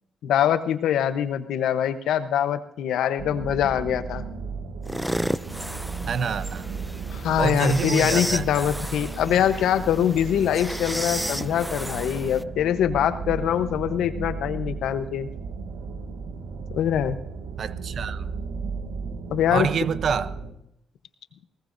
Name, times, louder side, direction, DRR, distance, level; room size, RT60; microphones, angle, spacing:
voice 1, 0.2-4.2 7.1-15.3 16.7-17.2 19.3-19.7, left 10 dB, 80° left, 0.9 m, -23 dB
sound 1, 3.2-20.5, right 5 dB, 90° right, 1.9 m, -35 dB
sound 2, 4.8-12.4, equal, ahead, 0.4 m, -33 dB
voice 2, 6.0-6.7 7.4-8.5 17.6-18.3 19.5-20.4, right 6 dB, 55° right, 0.7 m, -27 dB
20.5 x 18.5 x 2.7 m
cardioid pair, 90°, 0 cm